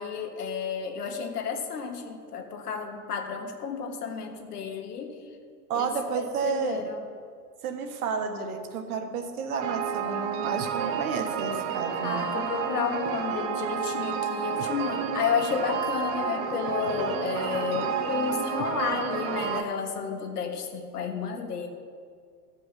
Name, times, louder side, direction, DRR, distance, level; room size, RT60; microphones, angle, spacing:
voice 1, 0.0-5.2 5.7-5.9 6.2-7.1 12.0-21.7, left 6 dB, 65° left, 3 dB, 1.5 m, -31 dB
voice 2, 5.7-6.9 7.6-12.3, right 5 dB, 60° right, 6 dB, 1.5 m, -31 dB
sound 1, 9.6-19.6, right 7 dB, 30° right, 0.8 m, -30 dB
13.5 x 5.3 x 6.9 m, 2.2 s
figure-of-eight pair, 105°, 50 cm